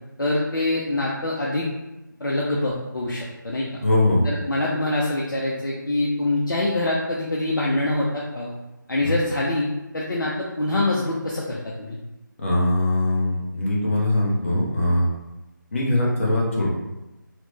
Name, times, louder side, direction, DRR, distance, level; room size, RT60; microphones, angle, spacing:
voice 1, 0.2-1.7 2.2-3.7 4.2-8.5 8.9-12.0, left 2 dB, 70° left, -4 dB, 0.5 m, -25 dB
voice 2, 3.8-4.2 9.0-9.1 12.4-15.1 15.7-16.7, left 1 dB, 40° left, -4 dB, 0.7 m, -21 dB
3.0 x 2.0 x 3.1 m, 0.99 s
figure-of-eight pair, 160°, 11 cm